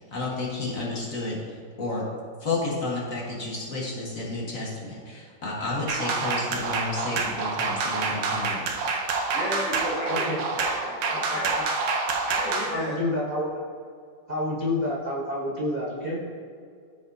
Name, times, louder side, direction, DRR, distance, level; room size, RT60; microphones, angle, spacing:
voice 1, 0.1-2.0 2.4-8.6, left 2 dB, 50° left, -5 dB, 1.7 m, -31 dB
sound 1, 5.9-12.7, right 4 dB, 85° right, 1.5 m, -27 dB
voice 2, 9.3-11.5 12.2-12.9, left 1 dB, 5° right, -7 dB, 1.7 m, -33 dB
voice 3, 10.1-10.4 11.1-11.6 12.7-13.5 14.3-16.3, left 1 dB, 35° right, -4 dB, 0.7 m, -29 dB
13.5 x 5.1 x 2.7 m, 2.2 s
omnidirectional pair, 2.0 m